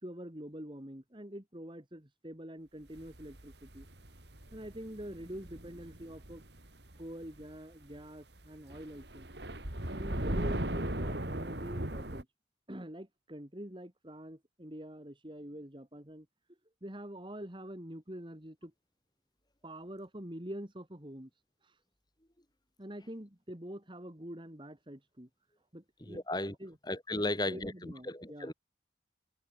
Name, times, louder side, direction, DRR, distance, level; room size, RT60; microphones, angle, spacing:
voice 1, 0.0-3.9 4.5-6.4 7.0-9.3 9.9-12.3 12.7-16.3 16.8-18.7 19.6-21.3 21.6-21.7 22.8-25.3 25.7-26.2 26.6-26.8 27.1-28.5, right 1 dB, 25° right, 2.6 m, -45 dB
sound 1, 3.0-7.6 7.8-8.0 8.4-12.2, right 1 dB, 65° right, 4.1 m, -38 dB
voice 2, 26.0-26.6 26.9-28.5, left 1 dB, 20° left, 5.8 m, -35 dB
head